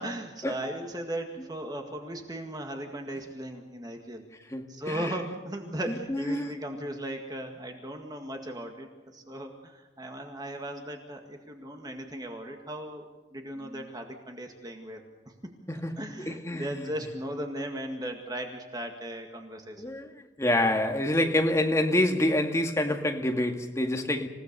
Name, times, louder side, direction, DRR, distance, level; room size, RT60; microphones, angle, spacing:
voice 1, 0.0-4.2 4.7-13.0 13.3-15.0 15.4-15.5 16.0-19.8, right 1 dB, 20° right, 3 dB, 1.9 m, -37 dB
voice 2, 4.5-5.2 5.9-6.5 13.6-13.9 15.7-16.9 19.8-20.1 20.4-24.3, left 1 dB, 15° left, 4 dB, 1.9 m, -27 dB
27.5 x 17.0 x 6.8 m, 1.2 s
head